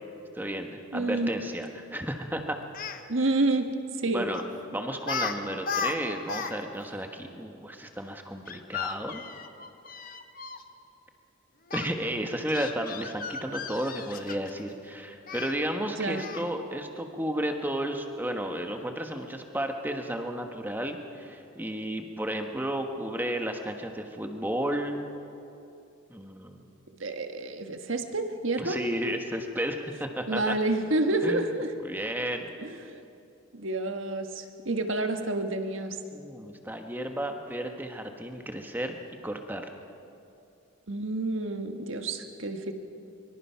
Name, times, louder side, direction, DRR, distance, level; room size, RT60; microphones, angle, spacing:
voice 1, 0.3-2.6 4.1-4.4 4.7-9.2 11.7-25.0 26.1-26.6 28.6-30.5 31.2-31.5 31.8-32.5 36.1-39.0 39.2-39.7, right 1 dB, 10° right, 4 dB, 1.3 m, -33 dB
voice 2, 0.9-1.4 3.1-3.7 4.0-4.3 15.8-16.3 27.0-28.8 30.3-31.7 32.6-32.9 33.5-36.0 40.9-42.7, right 2 dB, 70° right, 6 dB, 1.6 m, -29 dB
Speech, 2.6-3.0 4.3-4.5 5.0-5.3 5.6-6.5 6.8-6.9 8.5-10.6 11.7-11.9 12.5-14.6 15.3-15.5 16.2-16.5, left 5 dB, 40° left, 1.0 m, -35 dB
24.5 x 23.5 x 5.8 m, 2.7 s
head